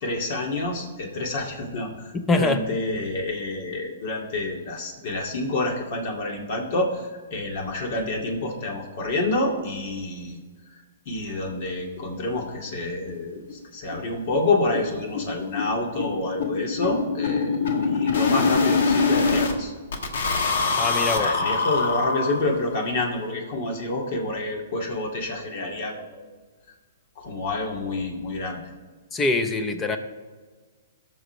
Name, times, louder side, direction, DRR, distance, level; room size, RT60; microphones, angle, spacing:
voice 1, 0.0-10.4 10.7-10.8 11.1-19.7 21.1-26.2 27.2-28.6, left 2 dB, 50° left, 1 dB, 2.1 m, -28 dB
voice 2, 2.3-2.6 20.8-21.3 29.1-30.0, left 3 dB, 15° left, 8 dB, 0.9 m, -23 dB
sound 1, 12.7-12.8 13.1-13.2 13.5-13.6 13.9-14.1 14.3-19.5 19.9-22.7, left 4 dB, 70° left, 1.3 m, -24 dB
18.0 x 6.3 x 3.3 m, 1.4 s
hypercardioid pair, 145°, 0 cm